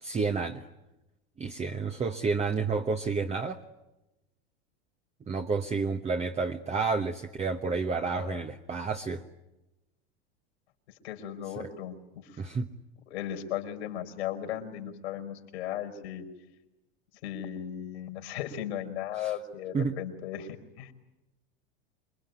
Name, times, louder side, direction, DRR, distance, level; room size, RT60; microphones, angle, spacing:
voice 1, 0.0-0.7 1.4-3.6 5.3-9.2 11.6-11.7 12.4-12.7 19.1-19.3 19.7-19.9, right 4 dB, 20° right, 5 dB, 1.2 m, -30 dB
voice 2, 8.0-8.4 11.0-12.4 13.1-16.3 17.2-20.9, left 10 dB, 80° left, 6 dB, 5.0 m, -36 dB
27.5 x 22.0 x 9.3 m, 0.97 s
hypercardioid pair, 110°, 32 cm